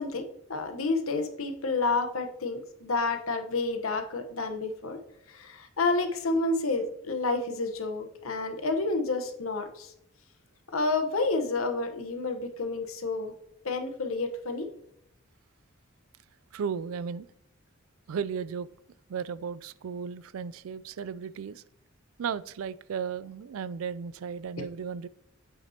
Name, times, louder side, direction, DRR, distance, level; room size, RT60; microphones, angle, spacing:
voice 1, 0.0-5.0 5.3-9.9 10.7-13.3 13.6-14.7, left 3 dB, 90° left, 1.1 m, -30 dB
voice 2, 16.5-17.3 18.1-18.7 19.1-21.6 22.2-25.1, right 6 dB, 85° right, 0.4 m, -35 dB
8.2 x 5.9 x 2.9 m
head